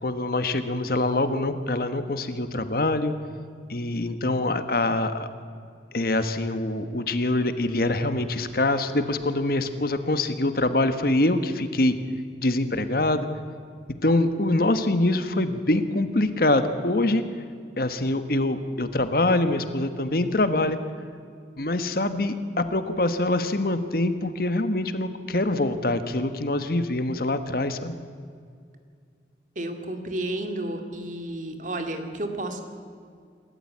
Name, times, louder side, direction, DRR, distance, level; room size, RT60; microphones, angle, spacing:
voice 1, 0.0-3.2 3.7-5.3 5.9-11.9 12.4-13.3 14.0-17.2 17.8-20.8 21.6-27.9, left 2 dB, 55° left, 10 dB, 1.3 m, -24 dB
voice 2, 29.6-32.6, right 1 dB, 45° right, 6 dB, 2.3 m, -31 dB
27.5 x 13.5 x 8.7 m, 2.2 s
head